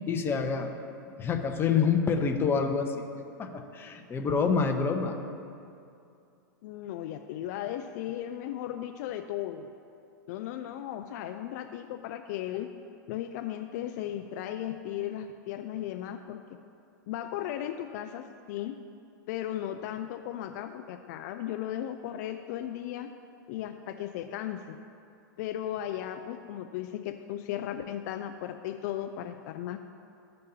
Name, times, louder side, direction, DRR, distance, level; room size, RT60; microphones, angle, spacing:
voice 1, 0.1-0.7 1.2-3.0 3.4-5.2, left 5 dB, 20° left, 4 dB, 0.8 m, -27 dB
voice 2, 6.6-9.7 10.3-12.7 13.1-16.4 17.1-18.8 19.3-23.1 23.5-24.8 25.4-29.8, left 11 dB, 55° left, 6 dB, 0.4 m, -36 dB
14.5 x 5.3 x 2.8 m, 2.5 s
hypercardioid pair, 115°, 11 cm